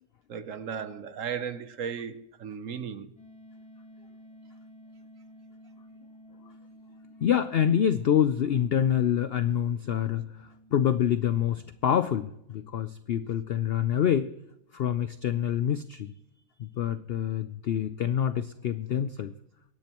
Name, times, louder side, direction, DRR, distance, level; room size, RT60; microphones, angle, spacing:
voice 1, 0.3-3.1, right 7 dB, 60° right, 1.1 m, -35 dB
sound 1, 3.2-13.9, equal, 5° left, 3.2 m, -54 dB
voice 2, 7.2-14.3 14.7-16.1 16.6-19.3, left 9 dB, 75° left, 0.5 m, -26 dB
23.5 x 10.5 x 3.0 m
omnidirectional pair, 1.6 m